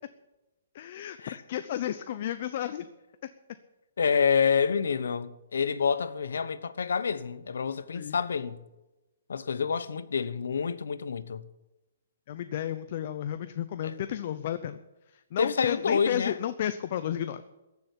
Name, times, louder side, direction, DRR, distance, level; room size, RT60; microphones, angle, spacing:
voice 1, 0.7-2.8 7.9-8.2 12.3-14.8 15.3-17.4, left 11 dB, 40° left, 0.6 m, -32 dB
voice 2, 4.0-8.6 9.3-11.5 13.8-14.0 15.4-16.4, left 6 dB, 85° left, 1.0 m, -28 dB
14.5 x 7.0 x 10.0 m
hypercardioid pair, 165°, 0 cm